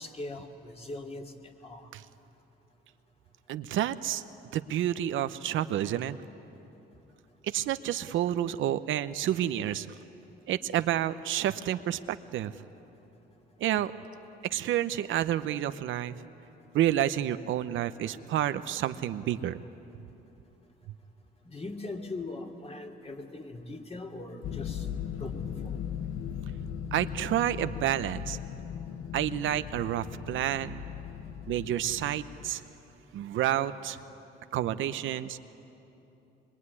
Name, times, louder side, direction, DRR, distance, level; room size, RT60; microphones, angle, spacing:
voice 1, 0.0-1.9 21.4-24.9 25.2-25.8, left 2 dB, 30° left, 2 dB, 2.9 m, -41 dB
voice 2, 3.5-4.2 4.5-6.2 7.4-9.9 10.5-12.5 13.6-13.9 14.4-16.2 16.7-19.6 26.9-28.4 29.1-30.8 31.5-32.6 33.1-34.0 34.5-35.4, right 12 dB, 80° right, 11 dB, 0.8 m, -29 dB
sound 1, 24.4-32.5, left 8 dB, 75° left, 1.3 m, -38 dB
24.5 x 22.5 x 9.8 m, 3.0 s
cardioid pair, 90°, 20 cm